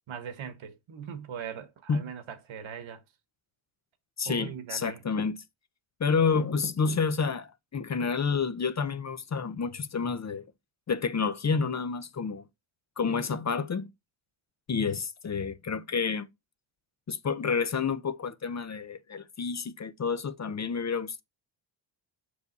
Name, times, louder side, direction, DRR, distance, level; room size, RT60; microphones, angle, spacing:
voice 1, 0.1-3.0 4.3-5.0, right 7 dB, 70° right, 1.4 m, -40 dB
voice 2, 4.2-5.4 6.0-10.4 10.9-12.4 13.0-13.9 14.7-16.3 17.1-21.2, left 5 dB, 35° left, 0.6 m, -29 dB
6.7 x 4.8 x 4.0 m
cardioid pair, 100°, 50 cm